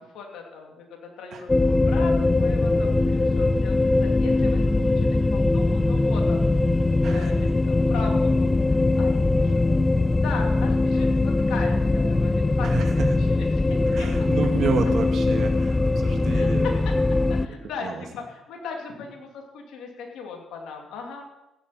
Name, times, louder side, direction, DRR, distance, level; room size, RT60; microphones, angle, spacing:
voice 1, 0.0-6.5 7.0-9.6 10.1-12.7 13.0-14.1 16.3-16.9 17.3-21.2, left 5 dB, 70° left, 1 dB, 2.8 m, -38 dB
sound 1, 1.5-17.5, left 2 dB, 25° left, 0.6 m, -21 dB
voice 2, 12.6-13.1 13.9-16.6 17.5-18.0, right 6 dB, 60° right, 4 dB, 2.1 m, -31 dB
15.5 x 10.0 x 4.4 m, 0.93 s
hypercardioid pair, 45°, 0 cm